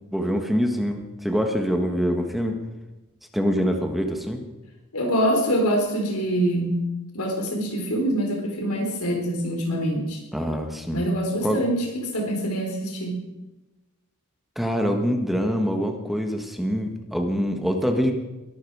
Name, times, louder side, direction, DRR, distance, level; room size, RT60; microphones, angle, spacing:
voice 1, 0.1-2.6 3.3-4.4 10.3-11.0 11.4-11.6 14.5-18.1, equal, ahead, 4 dB, 1.5 m, -25 dB
voice 2, 4.9-6.8 7.1-10.2 10.9-11.7 12.1-13.2, equal, 85° left, 1 dB, 4.3 m, -25 dB
22.0 x 12.5 x 4.9 m, 1.1 s
head